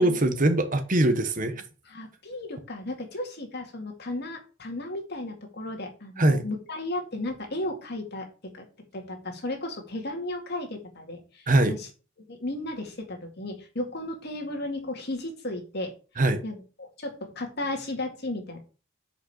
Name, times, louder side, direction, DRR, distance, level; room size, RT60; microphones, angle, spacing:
voice 1, 0.0-1.6 6.2-6.4 11.5-11.8 16.2-16.4, right 1 dB, 40° right, 1.2 m, -22 dB
voice 2, 1.9-8.7 8.9-11.9 12.2-15.9 16.4-18.6, left 1 dB, 55° left, 2.1 m, -34 dB
6.5 x 5.3 x 6.6 m
head